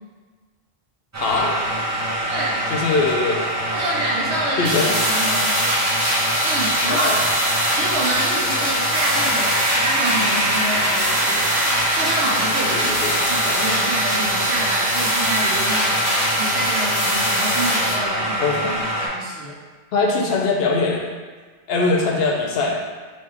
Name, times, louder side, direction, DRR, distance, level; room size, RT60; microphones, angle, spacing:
sound 1, 1.1-19.1, equal, 25° right, 0.4 m, -24 dB
voice 1, 1.2-1.6 2.7-3.4 4.6-4.9 6.9-7.2 12.7-13.2 18.4-18.7 19.9-21.1 21.7-22.8, left 3 dB, 70° left, 0 dB, 0.8 m, -21 dB
voice 2, 2.3-2.7 3.7-5.6 6.4-7.2 7.7-11.4 11.9-12.9 13.3-16.0 16.4-18.5 19.0-19.6, right 2 dB, 80° right, -3 dB, 1.0 m, -27 dB
sound 2, 4.6-17.9, equal, 45° right, 1.1 m, -23 dB
3.2 x 2.7 x 3.6 m, 1.5 s
omnidirectional pair, 1.1 m